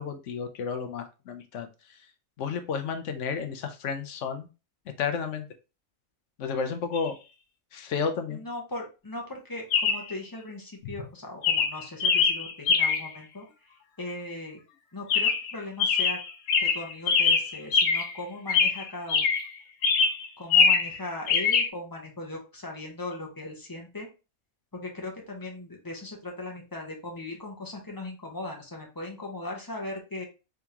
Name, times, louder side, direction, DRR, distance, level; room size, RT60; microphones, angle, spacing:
voice 1, 0.0-1.7 2.4-4.5 5.0-5.4 6.4-7.1 7.7-8.4, left 6 dB, 65° left, 8 dB, 0.9 m, -31 dB
Chirp tweet, 6.9-7.1 9.7-10.1 10.8-11.1 11.4-13.2 15.1-15.5 15.8-18.2 18.5-19.5 19.8-21.0 21.3-21.7, left 5 dB, 85° left, 1.1 m, -23 dB
voice 2, 8.3-13.4 14.0-14.6 14.9-16.2 16.6-19.3 20.4-24.1 24.7-30.2, left 2 dB, 20° left, 1 dB, 0.9 m, -38 dB
3.6 x 3.5 x 2.9 m, 0.30 s
omnidirectional pair, 1.4 m